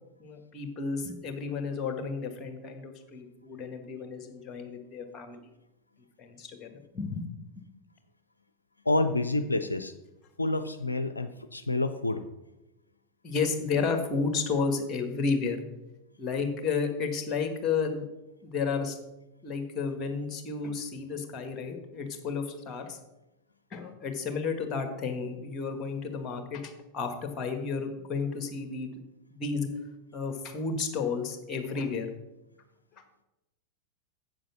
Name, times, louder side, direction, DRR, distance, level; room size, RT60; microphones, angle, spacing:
voice 1, 0.2-5.5 6.2-7.3 13.2-15.6 16.2-18.0 18.4-19.0 19.4-23.0 23.7-28.9 29.3-29.7 30.1-32.1, left 5 dB, 25° left, 6 dB, 1.6 m, -32 dB
voice 2, 8.9-9.9 10.4-12.2, left 2 dB, 80° left, 9 dB, 0.4 m, -28 dB
7.8 x 7.4 x 5.9 m, 0.97 s
figure-of-eight pair, 90°, 0 cm